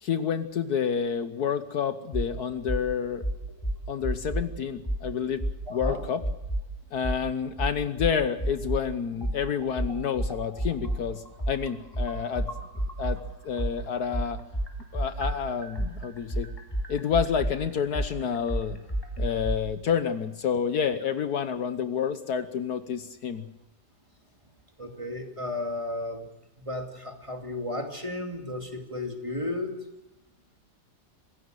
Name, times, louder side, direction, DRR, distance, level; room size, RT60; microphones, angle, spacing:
voice 1, 0.0-3.2 3.9-5.4 5.7-6.2 6.9-12.5 13.0-14.4 14.9-16.5 16.9-18.8 19.2-23.4, left 7 dB, 65° left, 11 dB, 1.4 m, -29 dB
sound 1, 2.1-2.3 2.7-2.8 3.2-4.5 4.8-5.0 5.4-6.7 7.0-7.2 7.6-8.8 9.2-13.2 13.6-19.6, right 1 dB, 15° left, 3.5 m, -30 dB
voice 2, 5.7-6.0 24.8-26.3 26.6-29.8, left 2 dB, 15° right, 4 dB, 2.6 m, -34 dB
26.0 x 16.0 x 7.9 m, 0.91 s
omnidirectional pair, 1.9 m